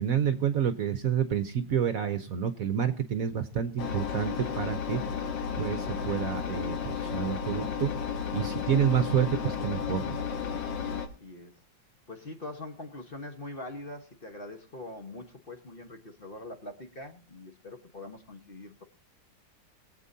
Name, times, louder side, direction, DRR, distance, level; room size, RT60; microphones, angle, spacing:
voice 1, 0.0-5.0 5.6-7.9 8.3-10.2, right 8 dB, 60° right, 10 dB, 1.1 m, -29 dB
Engine, 3.8-11.1, left 7 dB, 85° left, 1.9 m, -33 dB
voice 2, 10.9-11.5 12.1-18.8, left 2 dB, 35° left, 5 dB, 1.3 m, -43 dB
23.0 x 8.3 x 2.7 m, 0.38 s
omnidirectional pair, 2.0 m